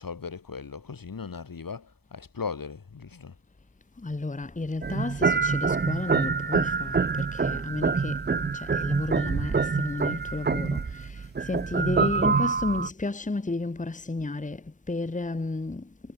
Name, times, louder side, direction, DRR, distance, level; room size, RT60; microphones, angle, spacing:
voice 1, 0.0-3.3, left 5 dB, 75° left, 2.9 m, -38 dB
voice 2, 4.0-15.9, left 3 dB, 20° left, 1.2 m, -32 dB
sound 1, 4.8-12.9, right 5 dB, 30° right, 0.6 m, -26 dB
wide cardioid pair, 100°, 35 cm